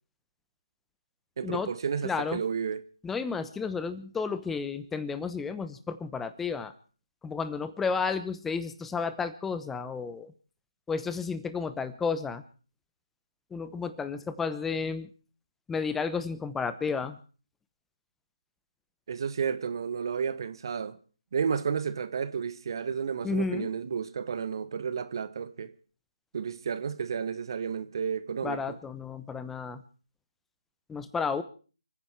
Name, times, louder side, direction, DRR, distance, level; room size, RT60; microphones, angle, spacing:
voice 1, 1.4-2.8 19.1-21.0 21.3-25.7 26.3-28.8, right 6 dB, 45° right, 1.2 m, -32 dB
voice 2, 2.0-2.4 3.0-6.7 7.2-10.3 10.9-12.4 13.5-15.1 15.7-17.2 23.2-23.7 28.4-29.8 30.9-31.4, left 5 dB, 5° left, 0.9 m, -32 dB
29.5 x 9.9 x 4.7 m
figure-of-eight pair, 150°, 3 cm